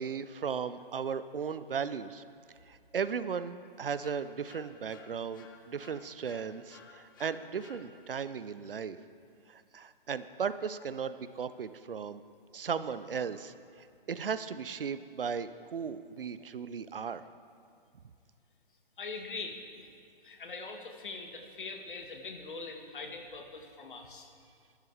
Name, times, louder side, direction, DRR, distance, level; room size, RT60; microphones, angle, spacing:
voice 1, 0.0-2.2 2.7-9.0 9.5-12.2 12.5-17.2, right 6 dB, 70° right, 14 dB, 0.6 m, -36 dB
sound 1, 4.0-8.3, left 6 dB, 20° left, 0.5 m, -57 dB
voice 2, 19.0-19.9 20.2-24.3, left 3 dB, 60° left, 4 dB, 1.4 m, -42 dB
11.5 x 11.0 x 3.3 m, 2.3 s
figure-of-eight pair, 135°, 29 cm